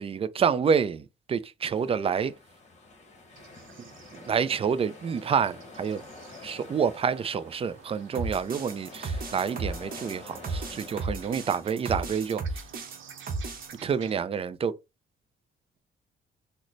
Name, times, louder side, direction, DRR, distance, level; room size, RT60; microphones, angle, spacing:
voice 1, 0.0-2.3 3.8-3.9 4.3-6.0 6.4-12.4 13.8-14.8, right 6 dB, 30° right, 0.3 m, -28 dB
sound 1, 1.7-11.5, left 3 dB, 35° left, 1.1 m, -48 dB
sound 2, 3.3-14.1, right 7 dB, 75° right, 0.8 m, -52 dB
sound 3, 8.1-13.7, right 3 dB, 45° right, 0.8 m, -34 dB
3.8 x 2.1 x 3.1 m
cardioid pair, 90°, 20 cm